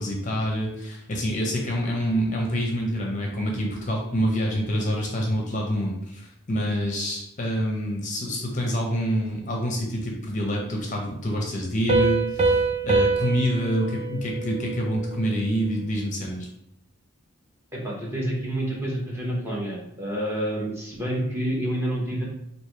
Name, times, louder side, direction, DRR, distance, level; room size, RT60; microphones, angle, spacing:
voice 1, 0.0-16.5, equal, 35° left, 0 dB, 0.6 m, -27 dB
Piano, 11.9-15.3, right 3 dB, 30° right, 0.4 m, -25 dB
voice 2, 17.7-22.2, right 1 dB, 10° right, -4 dB, 0.9 m, -28 dB
3.3 x 2.6 x 4.5 m, 0.78 s
head